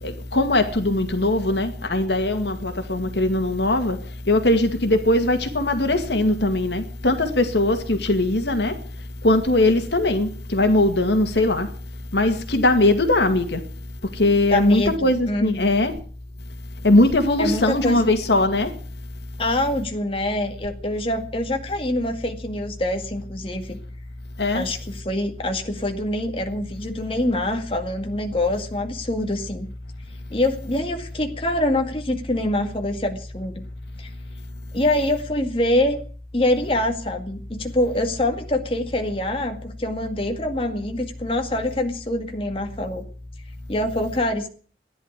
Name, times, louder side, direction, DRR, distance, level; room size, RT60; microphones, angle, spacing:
voice 1, 0.0-4.0 4.3-8.8 9.2-11.7 12.1-13.6 14.1-15.9 16.8-18.7 24.4-24.7, left 2 dB, 75° left, 2.2 m, -20 dB
voice 2, 14.5-14.9 15.3-15.7 17.4-18.1 19.4-23.8 24.5-29.7 30.3-33.6 34.0-34.1 34.7-36.0 36.3-43.0 43.7-44.5, left 1 dB, 30° left, 2.0 m, -25 dB
15.5 x 11.0 x 8.2 m
head